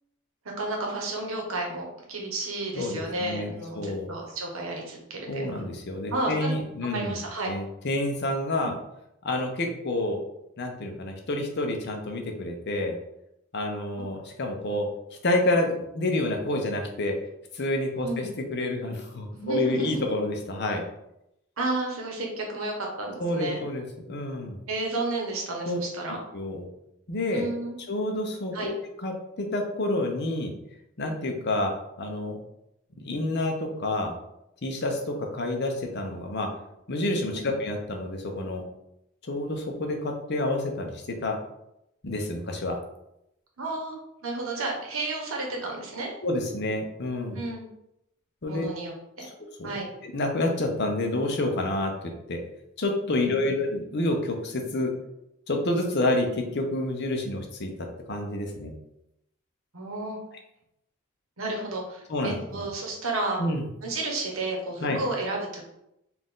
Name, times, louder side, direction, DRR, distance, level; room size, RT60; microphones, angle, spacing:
voice 1, 0.6-5.5 6.1-6.5 6.9-7.5 8.6-8.7 18.0-18.3 19.3-20.0 21.6-23.6 24.7-26.2 27.3-27.8 28.5-28.7 37.3-37.5 43.6-44.0 44.2-46.1 47.3-47.7 48.5-49.3 49.6-49.9 53.2-53.6 59.7-60.2 61.4-63.4 63.8-65.7, right 2 dB, 80° right, 0 dB, 1.1 m, -32 dB
voice 2, 2.8-4.1 5.3-7.2 7.5-8.7 9.2-10.2 10.6-13.0 13.5-14.9 15.2-17.1 17.5-18.2 18.5-20.8 23.2-24.6 25.7-25.8 26.3-26.7 27.1-27.5 27.9-28.7 29.0-30.5 31.0-31.7 32.0-32.4 33.0-34.2 34.6-36.5 36.9-38.6 39.3-41.4 42.0-42.8 46.2-47.4 48.4-48.7 49.6-49.7 50.0-51.9 52.3-52.4 52.8-54.9 55.5-56.3 56.5-57.7 58.1-58.7 62.1-62.6 63.4-63.6 64.8-65.0, left 1 dB, 55° left, 3 dB, 0.7 m, -28 dB
4.3 x 2.5 x 3.7 m, 0.83 s
head